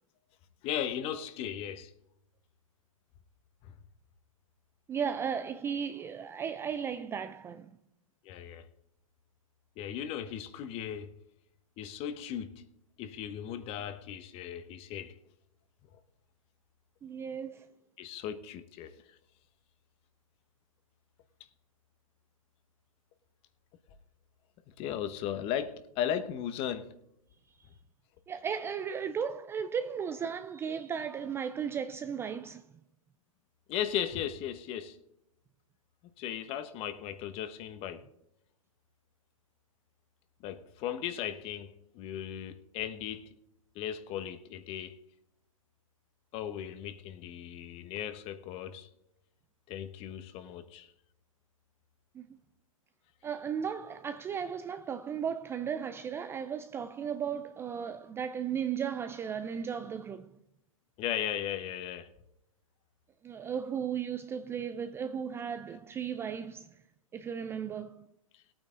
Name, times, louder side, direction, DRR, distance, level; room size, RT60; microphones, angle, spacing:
voice 1, 0.6-1.9 3.6-3.7 8.2-8.6 9.8-11.1 11.8-12.6 13.0-15.1 18.0-19.0 24.8-26.9 33.7-35.0 36.2-38.0 40.4-43.3 43.7-45.0 46.3-48.9 49.7-50.9 61.0-62.1 68.3-68.4, left 10 dB, 35° left, 1.1 m, -36 dB
voice 2, 4.9-7.8 17.0-17.7 27.6-27.7 28.3-32.7 52.1-52.4 53.2-60.4 63.2-66.8 67.1-68.1, right 7 dB, 15° right, 0.4 m, -35 dB
18.0 x 9.0 x 3.8 m
hypercardioid pair, 120°, 18 cm